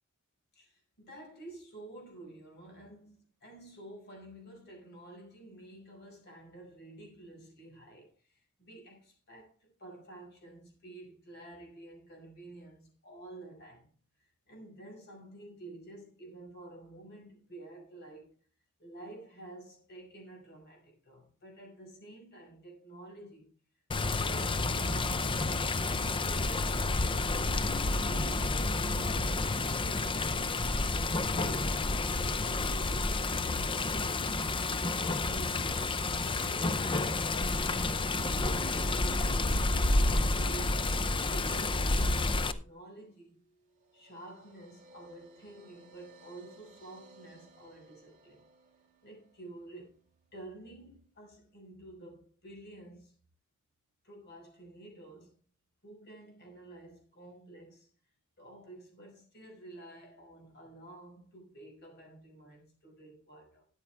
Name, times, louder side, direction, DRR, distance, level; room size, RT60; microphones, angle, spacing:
voice 1, 0.5-18.3 18.8-23.5 24.0-27.1 27.7-39.6 39.9-43.4 43.9-48.4 49.0-50.0 50.3-53.1 54.0-55.4 55.8-57.9 58.4-63.6, right 2 dB, 50° left, 5.4 m, -51 dB
Water, 23.9-42.5, left 2 dB, 25° left, 0.6 m, -30 dB
sound 1, 37.9-49.3, right 2 dB, 35° right, 2.8 m, -54 dB
13.0 x 9.2 x 3.4 m
head